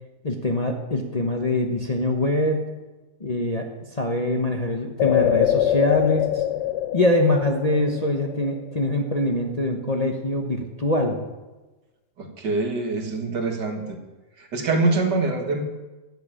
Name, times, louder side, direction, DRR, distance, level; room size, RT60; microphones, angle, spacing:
voice 1, 0.2-2.7 3.2-6.5 6.9-11.2, left 1 dB, 30° left, 2 dB, 0.9 m, -24 dB
sound 1, 5.0-8.7 9.0-9.1, left 12 dB, 85° left, 1.3 m, -24 dB
voice 2, 12.2-14.0 14.4-15.6, right 3 dB, 75° right, 4 dB, 2.2 m, -24 dB
13.5 x 6.7 x 9.0 m, 1.2 s
omnidirectional pair, 1.9 m